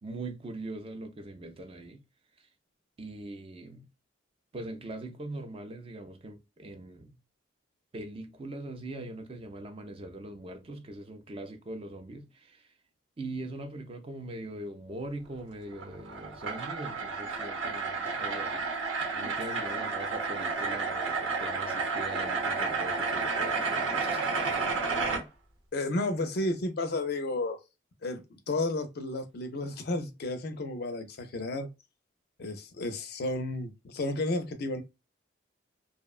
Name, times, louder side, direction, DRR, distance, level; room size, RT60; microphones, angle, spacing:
voice 1, 0.0-2.0 3.0-3.9 4.5-7.2 7.9-12.7 13.2-18.7 19.1-24.7, right 2 dB, 30° right, 0.3 m, -41 dB
sound 1, 15.7-25.2, right 4 dB, 80° right, 0.9 m, -31 dB
voice 2, 19.1-19.9 25.7-27.6 28.0-31.7 32.4-34.8, left 2 dB, 55° left, 0.4 m, -32 dB
2.7 x 2.1 x 2.3 m
head